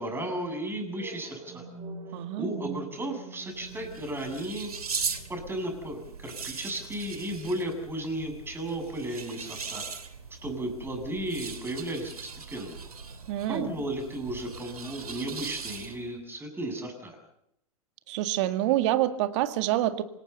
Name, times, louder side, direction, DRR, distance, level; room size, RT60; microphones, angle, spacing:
voice 1, 0.0-1.6 2.4-4.7 5.3-9.8 10.4-12.8 13.5-17.2, right 1 dB, 10° right, 5 dB, 7.4 m, -34 dB
sound 1, 0.9-8.9, right 5 dB, 30° right, 3.4 m, -46 dB
voice 2, 2.1-2.7 13.3-13.7 18.1-20.0, right 14 dB, 50° right, 10 dB, 2.0 m, -27 dB
sound 2, 3.4-16.2, right 5 dB, 80° right, 2.7 m, -39 dB
26.5 x 19.0 x 6.9 m, 0.76 s
figure-of-eight pair, 100°, 19 cm